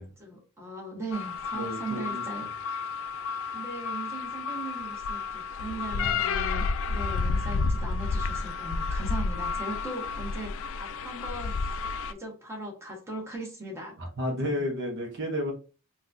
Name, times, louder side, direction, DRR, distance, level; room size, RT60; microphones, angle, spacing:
voice 1, 0.2-2.4 3.5-11.6 12.0-14.0 14.4-14.6, right 2 dB, 10° right, 1.1 m, -39 dB
sound 1, 1.1-12.1, left 4 dB, 60° left, 0.3 m, -31 dB
voice 2, 1.5-2.2 5.9-6.3 14.0-15.5, equal, 55° right, 0.7 m, -32 dB
4.0 x 2.3 x 2.5 m
head